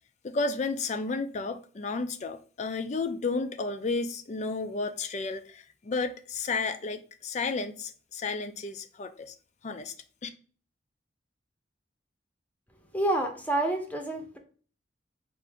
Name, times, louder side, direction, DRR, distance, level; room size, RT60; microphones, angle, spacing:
voice 1, 0.2-9.3 9.6-9.9 10.2-10.3, left 3 dB, 35° left, 0.4 m, -32 dB
voice 2, 12.9-14.4, right 1 dB, 10° left, 0.7 m, -28 dB
4.6 x 2.5 x 3.4 m
head